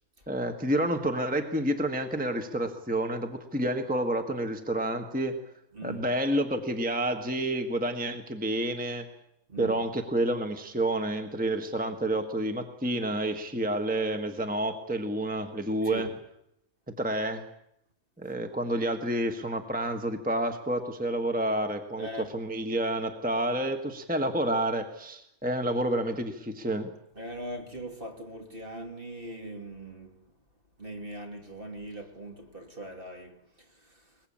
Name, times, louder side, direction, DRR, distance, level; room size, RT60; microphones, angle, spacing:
voice 1, 0.3-5.4 5.8-9.1 9.6-16.1 17.0-17.4 18.2-22.1 22.3-26.9, right 1 dB, 5° right, 1.4 m, -29 dB
voice 2, 5.7-6.1 9.5-9.8 15.8-16.1 22.0-22.4 27.1-30.3 30.8-34.2, right 1 dB, 40° right, 3.0 m, -41 dB
21.5 x 21.0 x 8.7 m
omnidirectional pair, 1.5 m